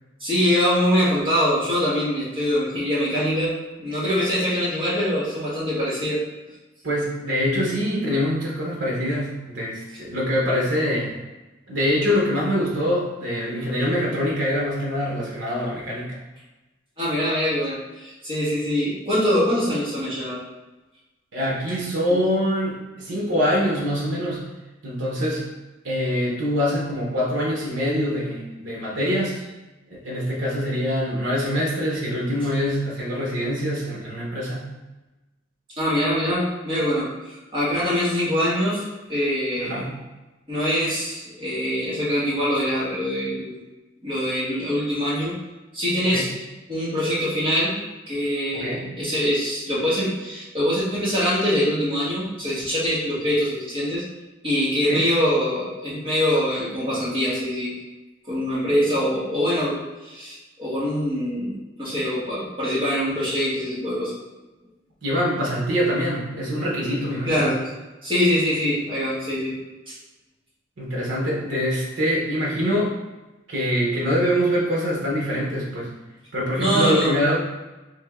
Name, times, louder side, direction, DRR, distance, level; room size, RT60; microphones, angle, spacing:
voice 1, 0.2-3.5 3.8-6.2 17.0-20.4 22.1-22.2 35.8-39.8 40.5-43.6 44.0-45.4 45.7-46.3 46.7-47.7 48.1-54.0 54.4-57.8 58.3-64.1 67.3-67.6 68.0-69.6 69.9-70.0 76.6-77.1, equal, 25° right, -9 dB, 1.5 m, -23 dB
voice 2, 6.8-11.1 11.7-16.2 21.3-24.5 24.8-25.5 25.8-29.4 29.9-34.7 39.6-40.1 46.1-46.3 48.5-48.9 54.9-55.0 65.0-67.5 70.8-73.0 73.5-75.9 76.3-77.4, equal, 70° right, -3 dB, 0.9 m, -24 dB
3.5 x 2.7 x 3.5 m, 1.1 s
head